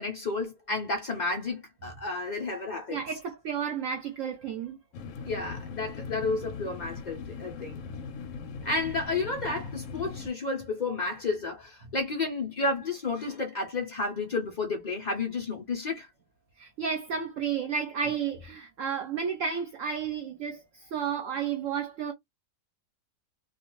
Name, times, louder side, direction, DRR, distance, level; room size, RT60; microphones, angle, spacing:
voice 1, 0.0-3.0 5.2-7.8 8.6-16.1, left 3 dB, 85° left, 0.4 m, -31 dB
voice 2, 2.9-4.8 16.6-22.1, right 7 dB, 65° right, 0.8 m, -32 dB
sound 1, 4.9-10.3, left 5 dB, 70° left, 0.8 m, -40 dB
2.4 x 2.3 x 3.0 m
omnidirectional pair, 1.7 m